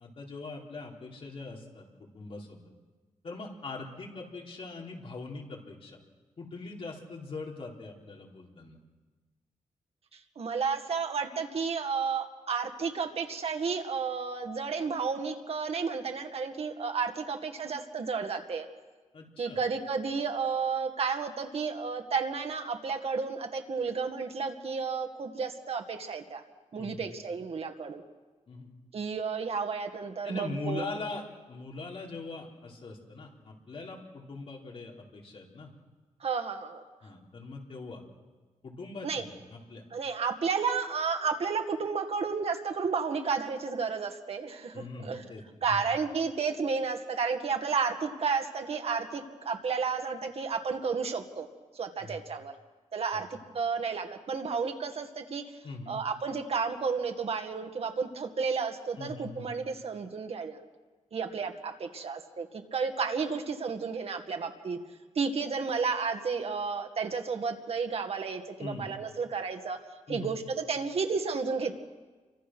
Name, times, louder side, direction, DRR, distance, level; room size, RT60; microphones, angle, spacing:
voice 1, 0.0-2.6 3.2-6.0 6.4-8.8 19.1-19.6 26.7-27.1 28.5-28.7 30.2-35.7 37.0-38.0 38.6-39.8 44.7-45.8 52.0-52.2 53.1-53.4 55.6-56.0 59.0-59.5 68.6-68.9 70.1-70.3, left 3 dB, 45° left, -1 dB, 4.2 m, -41 dB
voice 2, 10.4-18.7 19.4-26.4 26.7-28.0 28.9-30.9 36.2-36.8 39.0-39.2 39.9-45.2 45.6-51.5 51.8-52.5 52.9-53.3 53.5-55.4 55.9-60.6 61.1-64.8 65.2-69.8 70.1-71.7, right 5 dB, 50° right, 5 dB, 2.1 m, -32 dB
28.5 x 25.0 x 6.3 m, 1.3 s
wide cardioid pair, 155°, 13 cm